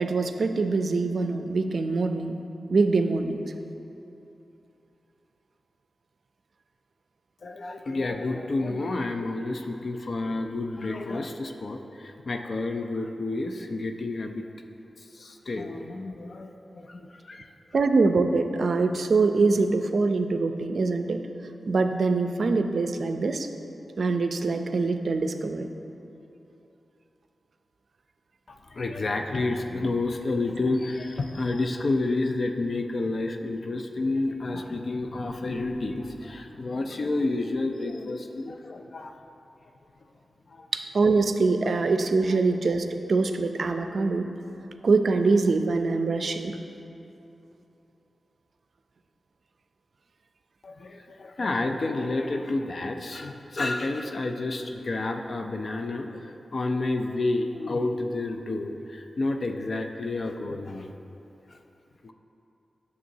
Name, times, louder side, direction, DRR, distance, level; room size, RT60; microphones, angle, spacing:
voice 1, 0.0-2.4 2.7-3.4 17.7-21.2 21.7-23.5 24.0-25.7 40.7-44.3 44.8-46.6, right 3 dB, 65° right, 7 dB, 0.4 m, -24 dB
voice 2, 7.4-14.4 15.1-17.5 28.5-39.2 40.5-40.7 50.6-60.9 62.0-62.1, left 2 dB, 55° left, 5 dB, 0.4 m, -30 dB
9.3 x 6.7 x 2.7 m, 2.8 s
cardioid pair, 70°, 0 cm